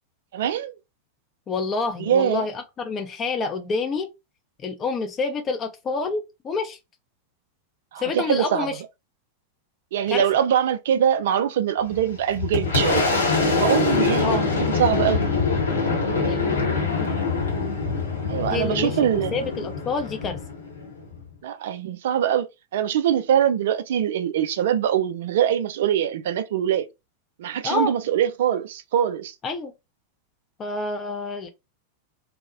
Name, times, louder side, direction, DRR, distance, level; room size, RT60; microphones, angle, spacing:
voice 1, 0.3-0.7 2.1-2.4 7.9-8.7 9.9-13.0 13.4-15.3 18.3-19.3 21.4-22.5 22.7-26.9 27.4-29.3, right 9 dB, 55° right, 0.3 m, -23 dB
voice 2, 1.5-4.1 4.6-6.8 8.0-8.8 10.1-10.2 14.2-14.5 16.3-16.4 18.5-20.4 27.6-27.9 29.4-29.7 30.6-31.5, left 4 dB, 25° left, 0.4 m, -28 dB
Boom, 11.9-21.3, left 4 dB, 75° left, 0.7 m, -24 dB
2.5 x 2.0 x 2.5 m
figure-of-eight pair, 90°, 0 cm